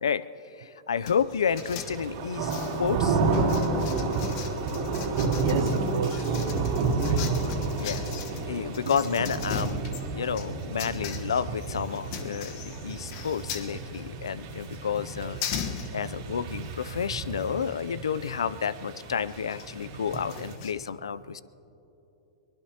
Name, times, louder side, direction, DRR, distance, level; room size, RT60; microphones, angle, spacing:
voice 1, 0.6-2.5 2.8-3.2 7.1-7.2 7.8-8.0 8.4-15.4 15.9-21.4, left 7 dB, 90° left, 17 dB, 0.5 m, -30 dB
sound 1, 1.0-20.7, left 7 dB, 55° left, 1.2 m, -41 dB
sound 2, 1.5-20.6, right 3 dB, 60° right, 2.6 m, -31 dB
voice 2, 5.3-7.5 8.1-8.4, right 9 dB, 75° right, 10 dB, 0.5 m, -36 dB
23.5 x 20.0 x 2.9 m, 3.0 s
hypercardioid pair, 115°, 3 cm